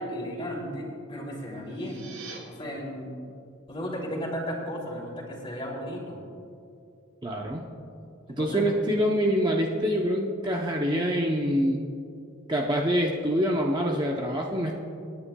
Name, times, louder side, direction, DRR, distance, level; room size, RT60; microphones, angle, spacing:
voice 1, 0.0-2.1 2.4-3.1 3.7-6.2 8.3-8.8, equal, 25° left, -3 dB, 2.7 m, -35 dB
sound 1, 1.6-2.4, right 5 dB, 80° right, 2.6 m, -44 dB
voice 2, 7.2-7.6 8.3-11.8 12.5-14.8, equal, 20° right, -1 dB, 0.7 m, -25 dB
26.5 x 9.9 x 2.3 m, 2.5 s
head